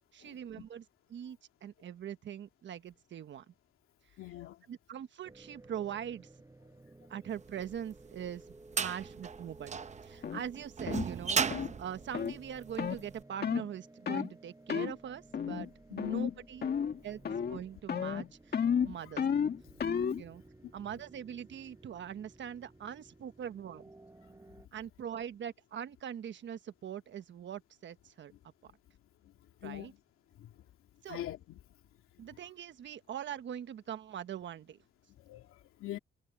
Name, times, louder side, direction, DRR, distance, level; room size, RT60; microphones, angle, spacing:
voice 1, 0.1-3.5 4.7-6.3 7.1-16.7 17.0-18.6 18.8-19.2 20.1-20.4 20.7-23.9 24.7-28.3 28.6-28.7 29.6-29.9 31.0-31.2 32.2-34.8, right 9 dB, 60° right, 1.3 m, -42 dB
voice 2, 4.2-4.6 15.9-16.1 29.6-30.0 30.4-30.5 31.1-31.6 35.3-35.5 35.8-36.0, left 13 dB, 85° left, 2.5 m, -43 dB
sound 1, 5.2-24.7, right 2 dB, 15° right, 6.4 m, -57 dB
sound 2, 7.7-13.0, right 6 dB, 35° right, 0.8 m, -35 dB
sound 3, 10.2-10.4 10.9-11.1 11.5-11.7 12.1-12.4 12.8-13.0 13.4-13.7 14.1-14.3 14.7-14.9 15.3-15.7 16.0-16.3 16.6-17.0 17.3-17.6 17.9-20.2, left 7 dB, 50° left, 2.1 m, -32 dB
cardioid pair, 110°, 21 cm